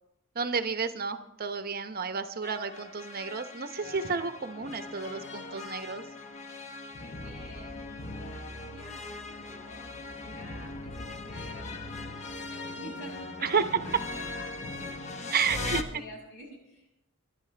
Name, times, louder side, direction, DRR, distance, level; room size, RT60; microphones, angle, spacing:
voice 1, 0.3-6.0 13.4-13.6 15.3-15.8, right 5 dB, 45° right, 9 dB, 0.8 m, -31 dB
sound 1, 2.4-15.8, left 3 dB, 35° left, 1.1 m, -40 dB
voice 2, 5.0-5.4 7.0-14.5 15.4-16.9, equal, 75° left, 0 dB, 6.2 m, -48 dB
24.5 x 11.5 x 3.4 m, 0.90 s
head